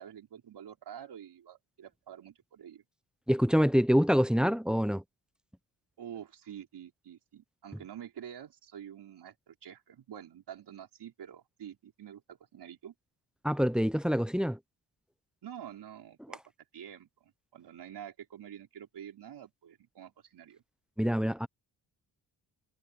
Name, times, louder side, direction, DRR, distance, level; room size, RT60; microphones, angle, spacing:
voice 1, 0.0-2.8 6.0-12.9 15.4-16.4 16.7-20.6, right 9 dB, 70° right, 5.2 m, -47 dB
voice 2, 3.3-5.0 13.4-14.6 21.0-21.5, equal, ahead, 0.6 m, -26 dB
wide cardioid pair, 145°, 42 cm